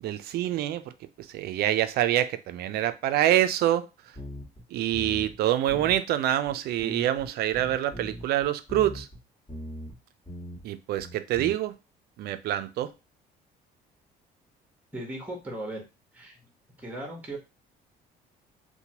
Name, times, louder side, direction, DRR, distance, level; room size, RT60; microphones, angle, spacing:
voice 1, 0.0-0.9 1.3-3.9 4.7-9.1 10.6-11.7 12.2-12.9, right 12 dB, 70° right, 0.4 m, -26 dB
sound 1, 4.2-4.6 4.9-5.4 5.7-6.0 6.5-6.6 6.8-9.2 9.5-10.0 10.3-10.7 11.0-11.5, equal, 25° left, 1.4 m, -40 dB
voice 2, 14.9-15.8 16.1-16.5 16.8-17.4, right 1 dB, 10° right, 1.0 m, -37 dB
2.9 x 2.2 x 2.8 m
cardioid pair, 110°, 17 cm